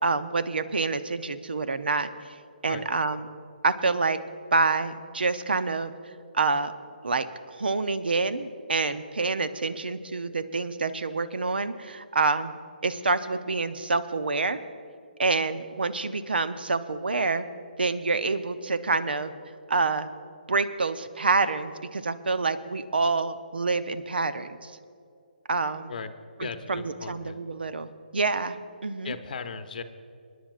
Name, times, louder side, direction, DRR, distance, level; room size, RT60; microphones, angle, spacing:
voice 1, 0.0-2.1 2.6-3.3 3.6-4.2 4.5-5.9 6.3-6.7 7.0-12.6 12.8-14.6 15.2-17.5 17.8-19.3 19.7-20.1 20.5-24.7 25.5-25.9 26.4-28.6 28.8-29.1, right 3 dB, 75° right, 12 dB, 0.7 m, -27 dB
voice 2, 26.4-27.4 29.0-29.8, left 5 dB, 55° left, 9 dB, 0.8 m, -37 dB
27.0 x 10.5 x 2.5 m, 2.3 s
figure-of-eight pair, 145°, 5 cm